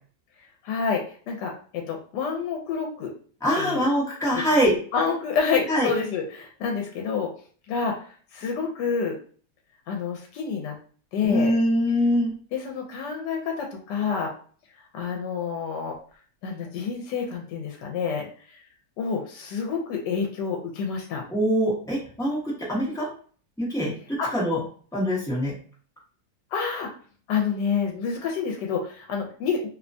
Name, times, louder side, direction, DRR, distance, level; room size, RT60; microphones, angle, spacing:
voice 1, 0.6-3.1 3.6-3.8 4.3-4.4 4.9-7.3 7.7-9.2 9.9-10.7 11.1-11.5 12.5-14.3 14.9-16.0 16.4-18.6 19.0-21.2 24.2-24.3 26.5-26.9 27.3-29.7, left 6 dB, 85° left, 2 dB, 1.2 m, -28 dB
voice 2, 3.4-4.8 5.7-5.9 11.2-12.4 21.3-23.1 23.6-24.6 24.9-25.6, equal, 5° left, -6 dB, 0.6 m, -23 dB
2.9 x 2.1 x 2.5 m, 0.44 s
omnidirectional pair, 1.8 m